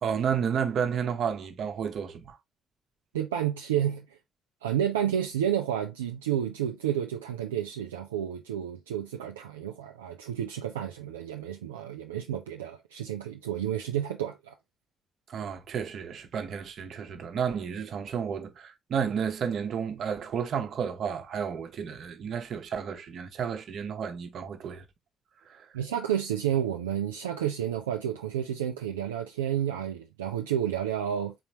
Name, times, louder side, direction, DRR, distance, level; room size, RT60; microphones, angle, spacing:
voice 1, 0.0-2.4 15.3-24.8 25.5-25.7, right 7 dB, 50° right, 0.9 m, -31 dB
voice 2, 3.1-4.1 4.6-14.5 25.7-31.3, right 10 dB, 75° right, 0.3 m, -30 dB
4.3 x 3.9 x 2.9 m
figure-of-eight pair, 40°, 0 cm